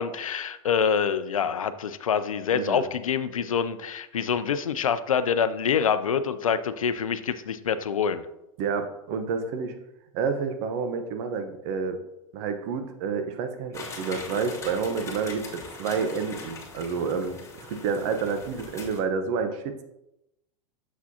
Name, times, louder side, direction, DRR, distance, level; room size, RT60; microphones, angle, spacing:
voice 1, 0.0-8.2, left 7 dB, 90° left, 12 dB, 0.5 m, -26 dB
voice 2, 2.5-2.9 8.6-9.7 10.1-12.0 12.3-19.8, right 5 dB, 55° right, 7 dB, 0.9 m, -29 dB
sound 1, 13.7-19.0, left 3 dB, 15° left, 2.2 m, -41 dB
7.3 x 6.1 x 2.8 m, 0.88 s
hypercardioid pair, 100°, 17 cm